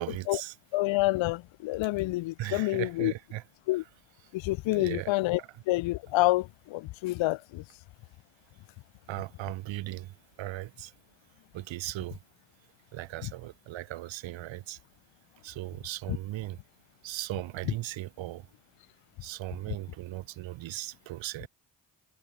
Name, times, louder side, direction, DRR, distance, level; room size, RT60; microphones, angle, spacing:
voice 1, 0.0-0.5 2.4-3.4 4.2-4.3 4.7-5.1 5.4-5.5 9.1-10.9 11.5-12.2 12.9-14.8 15.4-16.6 17.0-18.5 19.2-21.5, right 16 dB, 75° right, 0.7 m, -38 dB
voice 2, 0.7-3.1 3.7-3.8 4.3-5.4 5.7-7.6, left 19 dB, 75° left, 0.5 m, -28 dB
supercardioid pair, 40°, 46 cm